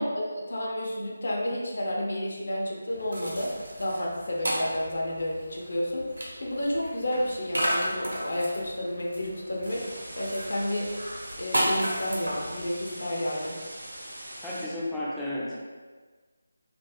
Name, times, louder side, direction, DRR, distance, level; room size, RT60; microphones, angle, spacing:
voice 1, 0.0-3.5 3.8-6.1 6.4-9.9 10.2-11.0 11.4-13.6, left 1 dB, 65° left, -2 dB, 0.7 m, -30 dB
Stacking wood - Lighter log, 2.9-12.9, equal, 85° right, 0.9 m, -34 dB
sound 1, 9.7-14.6, right 1 dB, 55° right, 1.0 m, -42 dB
voice 2, 14.4-15.6, left 1 dB, 5° left, -9 dB, 0.4 m, -33 dB
2.5 x 2.5 x 3.4 m, 1.4 s
figure-of-eight pair, 170°, 0 cm